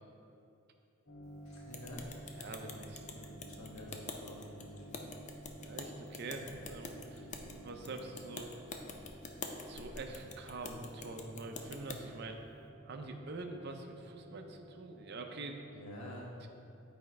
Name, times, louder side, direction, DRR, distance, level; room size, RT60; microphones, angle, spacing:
sound 1, 1.0-15.9, right 2 dB, 60° left, 1.0 m, -54 dB
voice 1, 1.4-2.1 2.6-2.8 3.1-5.0 15.7-16.3, left 1 dB, 90° left, -3 dB, 1.3 m, -49 dB
sound 2, 1.7-12.0, left 4 dB, 35° left, 0.5 m, -47 dB
voice 2, 2.3-3.0 5.6-7.3 7.6-8.5 9.7-12.4 12.8-15.6, right 3 dB, 50° right, 4 dB, 0.6 m, -45 dB
7.8 x 4.2 x 4.7 m, 2.7 s
head